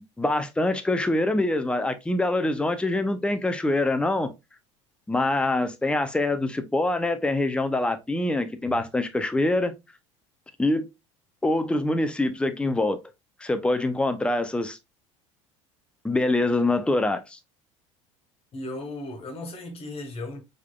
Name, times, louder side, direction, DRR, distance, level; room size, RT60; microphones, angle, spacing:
voice 1, 0.2-4.3 5.1-9.7 10.6-10.9 11.4-13.0 13.4-14.8 16.0-17.4, left 2 dB, 5° left, 0.7 m, -24 dB
voice 2, 18.5-20.4, left 2 dB, 35° left, 1.7 m, -36 dB
4.6 x 3.7 x 2.4 m
hypercardioid pair, 75°, 16 cm